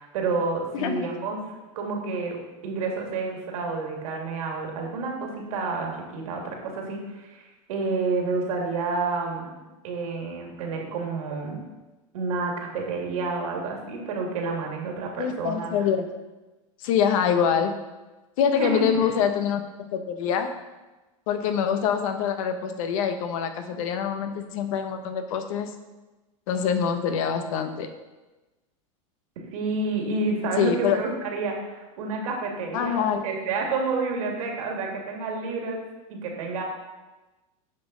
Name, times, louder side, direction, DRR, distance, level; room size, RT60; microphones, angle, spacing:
voice 1, 0.0-1.4 1.7-2.4 2.6-7.4 7.7-9.5 9.8-11.6 12.1-15.7 18.6-19.1 29.5-35.8 36.1-36.6, right 3 dB, 80° right, 0 dB, 2.0 m, -29 dB
voice 2, 0.7-1.1 15.2-16.1 16.8-17.8 18.4-19.6 19.9-20.5 21.3-25.7 26.5-27.9 30.6-31.0 32.7-33.2, left 7 dB, 70° left, 8 dB, 0.9 m, -25 dB
8.8 x 5.4 x 3.8 m, 1.1 s
hypercardioid pair, 110°, 18 cm